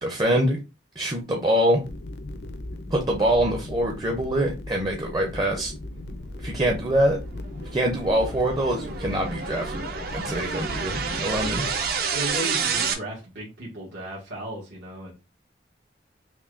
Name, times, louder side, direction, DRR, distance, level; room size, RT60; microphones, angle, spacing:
voice 1, 0.0-0.6 1.0-1.8 2.9-5.7 6.4-7.2 7.7-9.8 10.1-11.6, right 1 dB, 25° right, 1 dB, 0.6 m, -24 dB
sound 1, 1.8-11.8, left 1 dB, 70° left, 0.6 m, -37 dB
sound 2, 6.0-12.9, right 5 dB, 60° right, 0.7 m, -30 dB
voice 2, 12.1-15.1, right 1 dB, 75° right, -5 dB, 1.4 m, -35 dB
5.8 x 2.3 x 2.5 m, 0.27 s
head